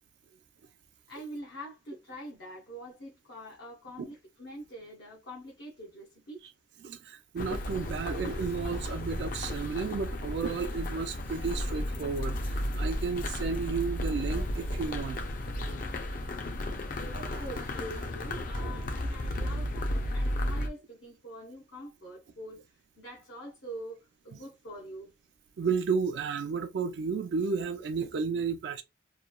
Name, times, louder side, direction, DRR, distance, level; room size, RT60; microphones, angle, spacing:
voice 1, 1.1-6.4 17.1-24.0 24.2-25.1, equal, 80° left, 0.7 m, -45 dB
voice 2, 6.8-16.0 17.0-17.4 25.6-28.8, right 5 dB, 65° right, 0.3 m, -33 dB
sound 1, 7.4-20.7, left 1 dB, 45° left, 0.4 m, -33 dB
sound 2, 18.5-20.4, right 1 dB, 85° right, 0.9 m, -48 dB
3.0 x 2.2 x 2.2 m
head